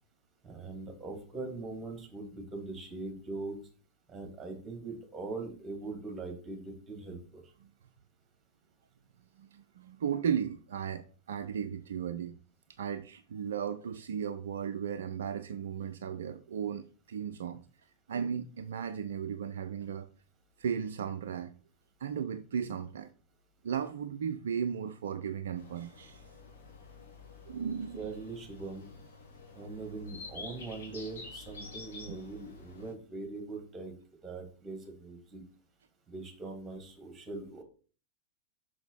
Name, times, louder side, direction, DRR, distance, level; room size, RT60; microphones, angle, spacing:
voice 1, 0.4-3.6 4.1-7.5 27.9-28.9 29.5-33.9 34.2-35.4 36.1-37.6, right 3 dB, 15° right, 2.8 m, -41 dB
voice 2, 9.4-12.4 12.8-17.6 18.1-20.1 20.6-21.5 22.0-23.1 23.6-26.2 27.5-28.1, right 7 dB, 65° right, 0.4 m, -35 dB
sound 1, 25.6-32.9, left 4 dB, 60° left, 2.3 m, -49 dB
6.1 x 6.0 x 4.2 m
figure-of-eight pair, 90°, 0 cm